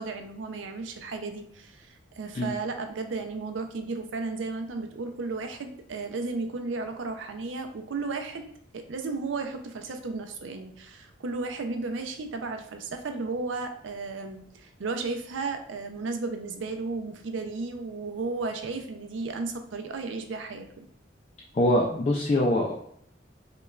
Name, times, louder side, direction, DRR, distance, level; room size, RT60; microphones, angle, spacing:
voice 1, 0.0-8.5 8.7-20.9, right 3 dB, 85° right, 6 dB, 0.5 m, -34 dB
voice 2, 21.5-22.7, left 1 dB, 35° left, -2 dB, 0.3 m, -23 dB
5.0 x 2.3 x 2.3 m, 0.67 s
head